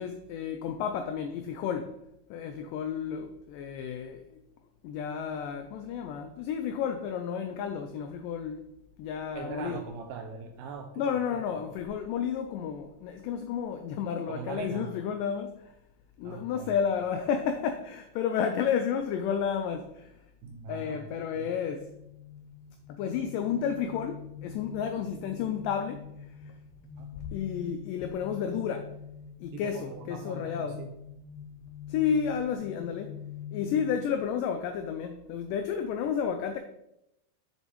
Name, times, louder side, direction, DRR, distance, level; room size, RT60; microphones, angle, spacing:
voice 1, 0.0-2.0 2.3-4.4 4.8-8.6 9.0-9.8 11.0-15.7 16.2-20.3 20.7-21.9 22.9-26.5 27.1-28.9 29.4-30.8 31.9-33.1 33.5-36.6, left 7 dB, 85° left, 1.9 m, -31 dB
voice 2, 9.3-11.7 14.3-14.9 16.2-16.7 20.4-21.0 21.3-21.5 27.0-27.1 29.5-30.9, right 5 dB, 80° right, 2.0 m, -41 dB
sound 1, 21.5-34.2, left 8 dB, 35° left, 1.8 m, -44 dB
7.3 x 6.6 x 3.1 m
omnidirectional pair, 4.2 m